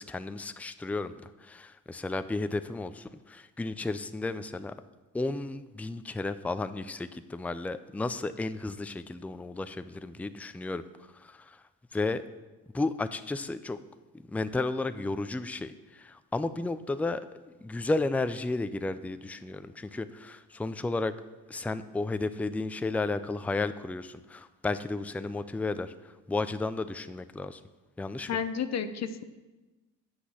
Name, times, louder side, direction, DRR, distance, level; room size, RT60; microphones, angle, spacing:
voice 1, 0.0-4.7 5.1-10.8 11.1-11.6 11.9-12.2 12.7-13.8 14.1-17.3 17.6-21.1 21.5-27.6 28.0-28.3, left 3 dB, 5° left, 12 dB, 0.4 m, -33 dB
voice 2, 28.3-29.2, left 7 dB, 50° left, 11 dB, 0.7 m, -31 dB
7.9 x 6.2 x 7.0 m, 1.2 s
supercardioid pair, 75°, 34 cm